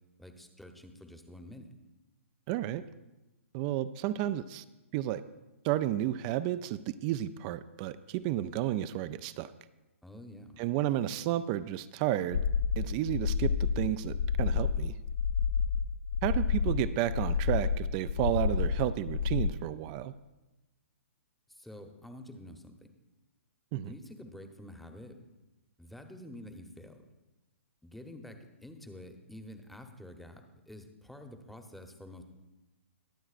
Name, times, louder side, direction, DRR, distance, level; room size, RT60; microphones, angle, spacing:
voice 1, 0.2-1.7 10.0-10.6 21.5-22.9 23.8-25.2 25.8-27.1 27.8-32.2, left 1 dB, ahead, 5 dB, 0.9 m, -48 dB
voice 2, 2.5-2.8 3.5-4.6 4.9-5.2 5.6-9.5 10.6-12.4 12.8-14.9 16.2-20.1 23.7-23.9, right 13 dB, 35° right, 14 dB, 0.4 m, -32 dB
sound 1, 12.3-19.5, left 6 dB, 70° left, 0.4 m, -30 dB
22.0 x 7.8 x 2.5 m, 1.0 s
hypercardioid pair, 130°, 7 cm